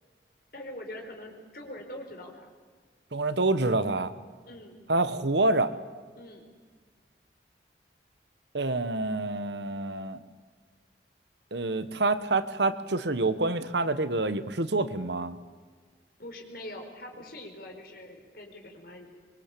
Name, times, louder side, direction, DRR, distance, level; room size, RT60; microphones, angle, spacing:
voice 1, 0.5-2.5 4.4-4.8 6.1-6.5 16.2-19.1, left 1 dB, 55° left, 3 dB, 4.6 m, -43 dB
voice 2, 3.1-4.1 4.9-5.7 8.5-10.2 11.5-15.4, right 2 dB, 75° right, 13 dB, 1.2 m, -27 dB
24.0 x 23.0 x 8.4 m, 1.5 s
head